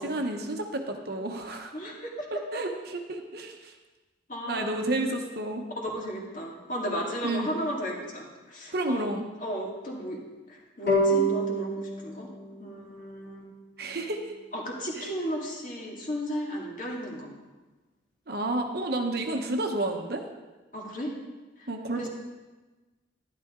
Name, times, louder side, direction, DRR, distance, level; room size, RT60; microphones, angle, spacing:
voice 1, 0.0-1.7 2.3-3.7 4.5-5.7 7.2-7.5 8.7-9.3 13.8-14.3 15.0-15.1 18.3-20.2 21.7-22.1, right 2 dB, 55° right, 4 dB, 1.0 m, -31 dB
voice 2, 1.7-2.3 4.3-4.8 5.8-9.0 9.4-10.2 10.5-12.3 12.6-13.4 14.5-17.3 20.7-21.1 21.6-21.7 22.0-22.1, equal, 40° left, -2 dB, 2.2 m, -34 dB
sound 1, 10.9-14.1, right 1 dB, 60° left, 3.1 m, -29 dB
11.5 x 11.5 x 3.7 m, 1.2 s
head